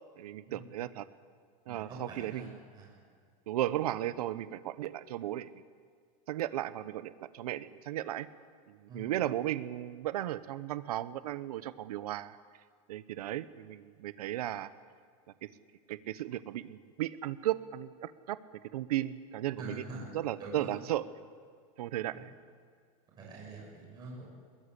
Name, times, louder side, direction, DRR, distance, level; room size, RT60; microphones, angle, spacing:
voice 1, 0.2-1.1 1.7-2.6 3.5-5.5 6.3-8.3 8.7-12.4 12.9-14.7 15.4-15.5 15.9-18.4 18.7-19.8 20.1-21.0 21.8-22.3, right 13 dB, 85° right, 14 dB, 1.1 m, -35 dB
voice 2, 1.7-3.0 8.9-9.1 19.6-20.1 20.4-20.7 22.1-22.2 23.2-24.3, right 2 dB, 20° right, -3 dB, 7.3 m, -45 dB
22.0 x 20.5 x 8.4 m, 2.1 s
supercardioid pair, 165°, 19 cm